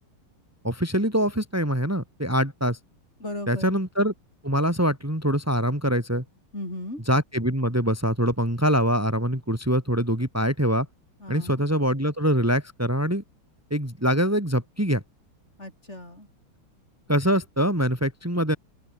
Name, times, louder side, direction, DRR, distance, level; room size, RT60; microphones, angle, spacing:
voice 1, 0.6-2.8 3.5-4.1 4.4-6.2 7.1-10.9 11.3-13.2 13.7-15.0 17.1-18.6, equal, 5° right, 4.1 m, -24 dB
voice 2, 3.2-3.8 6.5-7.0 11.2-11.6 15.6-16.3, left 1 dB, 30° left, 8.2 m, -36 dB
open air
omnidirectional pair, 2.4 m